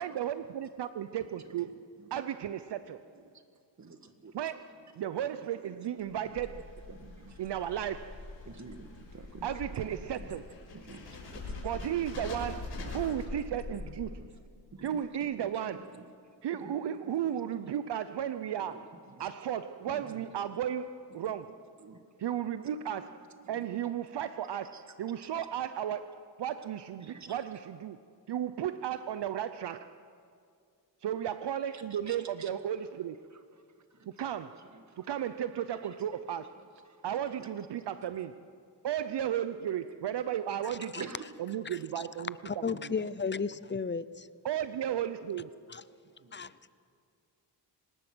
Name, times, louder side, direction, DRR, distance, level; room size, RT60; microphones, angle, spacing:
voice 1, 0.0-1.8 2.1-3.0 4.3-4.5 5.0-6.6 7.4-8.2 9.4-10.4 11.6-14.1 14.8-15.8 16.4-18.9 19.2-21.6 22.2-28.0 28.3-29.9 31.0-33.2 34.1-34.7 35.0-36.6 37.0-38.5 38.8-41.1 41.5-41.6 41.9-42.9 44.4-45.5, right 10 dB, 65° right, 11 dB, 0.7 m, -34 dB
voice 2, 1.2-2.1 3.1-3.4 3.8-5.8 6.2-7.9 8.4-10.4 10.7-12.3 12.8-14.4 14.7-17.6 18.6-19.3 19.9-20.5 21.1-21.2 21.8-22.1 23.0-23.2 23.4-23.8 24.5-25.0 27.0-27.5 31.6-32.5 33.3-34.3 34.5-35.1 35.5-37.5 37.8-38.1 41.0-41.3, right 4 dB, 40° right, 8 dB, 1.8 m, -51 dB
sound 1, 6.0-14.3, left 3 dB, 75° left, 5.9 m, -43 dB
voice 3, 42.5-44.3 45.7-45.8 46.4-46.5, left 5 dB, 25° left, 17 dB, 0.6 m, -33 dB
25.0 x 20.0 x 6.2 m, 2.2 s
cardioid pair, 85°, 44 cm